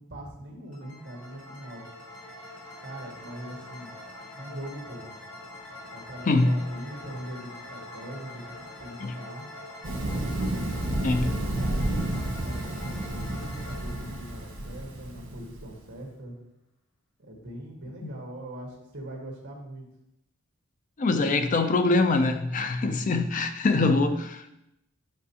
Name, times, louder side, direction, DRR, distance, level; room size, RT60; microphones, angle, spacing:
voice 1, 0.0-1.8 2.8-4.0 4.4-5.1 5.9-8.4 8.8-9.5 10.4-16.4 17.2-19.9, right 1 dB, 55° right, 1.7 m, -41 dB
sound 1, 0.7-15.5, left 1 dB, 80° left, 1.7 m, -44 dB
voice 2, 6.2-6.6 9.0-9.1 11.0-11.3 18.0-18.1 21.0-24.5, left 3 dB, 40° left, 0.4 m, -24 dB
Thunder, 9.8-15.7, right 1 dB, 80° right, 1.3 m, -31 dB
7.3 x 6.4 x 2.8 m
head